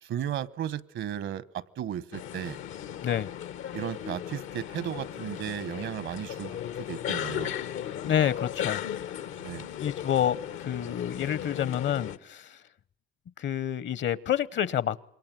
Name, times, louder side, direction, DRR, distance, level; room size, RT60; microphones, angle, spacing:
voice 1, 0.0-2.6 3.7-7.5 9.4-9.7, right 10 dB, 75° right, 1.2 m, -35 dB
sound 1, 2.1-12.2, left 10 dB, 90° left, 1.4 m, -36 dB
voice 2, 8.0-8.8 9.8-12.6 13.4-15.0, left 10 dB, 65° left, 1.1 m, -28 dB
27.5 x 22.5 x 9.2 m
cardioid pair, 90°, 20 cm